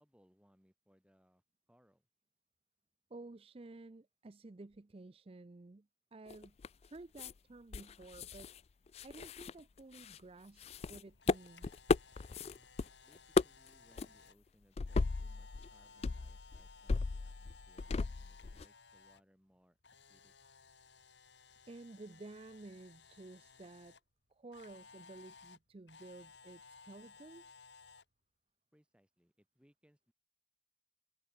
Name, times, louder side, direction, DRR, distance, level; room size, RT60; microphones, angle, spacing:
voice 1, 0.0-1.4 1.7-2.1 12.5-20.3 28.7-30.1, equal, 5° right, 6.9 m, -70 dB
voice 2, 3.1-5.9 6.1-6.5 6.8-8.5 9.0-11.8 21.7-23.9 24.4-27.6, right 2 dB, 30° right, 0.5 m, -53 dB
sound 1, 6.3-6.9 7.2-7.3 7.7-8.6 8.9-10.2 10.6-12.9 13.1-13.7 14.0-14.1 14.8-15.7 16.0-18.7, left 4 dB, 35° left, 0.3 m, -35 dB
Camera, 10.9-19.2 19.5-24.0 24.5-28.0, left 5 dB, 80° left, 3.8 m, -59 dB
head